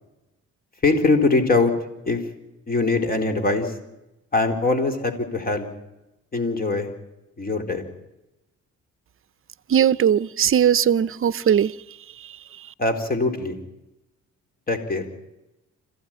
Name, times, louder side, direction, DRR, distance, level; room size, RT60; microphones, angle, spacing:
voice 1, 0.8-1.7 2.1-2.2 2.7-3.7 4.3-5.7 6.3-6.9 7.4-7.9 12.8-13.6 14.7-15.0, left 3 dB, 30° left, 4.1 m, -22 dB
voice 2, 9.7-11.7, right 9 dB, 45° right, 0.7 m, -19 dB
26.5 x 16.0 x 9.0 m
cardioid pair, 90°, 30 cm